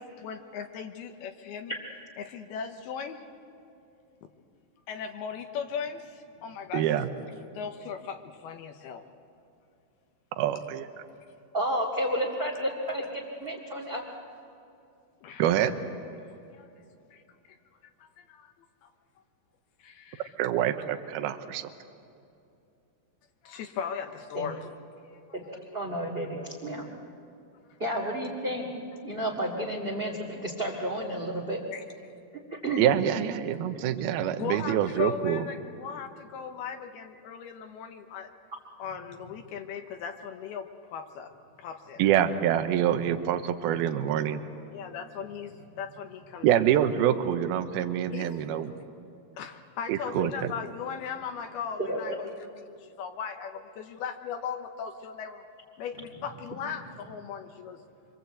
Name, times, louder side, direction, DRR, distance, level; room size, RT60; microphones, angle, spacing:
voice 1, 0.0-1.7 2.2-3.2 4.9-7.1 7.5-9.0 15.2-15.5 16.5-16.7 17.1-17.2 17.5-17.6 18.0-18.5 18.8-18.9 19.8-20.3 23.4-24.7 25.1-25.2 31.7-31.8 34.4-38.3 38.8-41.3 41.6-42.0 44.7-46.6 48.1-48.3 49.4-55.4 55.8-57.8, left 7 dB, 75° left, 5 dB, 2.9 m, -38 dB
voice 2, 6.7-7.1 10.4-10.9 15.4-15.8 20.4-21.7 32.8-35.4 42.0-44.4 46.4-48.7 49.9-50.5, right 10 dB, 75° right, 8 dB, 2.8 m, -26 dB
voice 3, 11.5-14.0 24.3-24.5 25.3-25.4 25.7-26.8 27.8-28.7 29.0-31.6 32.6-32.8 51.8-52.2, right 1 dB, 20° right, -3 dB, 1.7 m, -31 dB
25.5 x 25.0 x 8.1 m, 2.6 s
omnidirectional pair, 4.6 m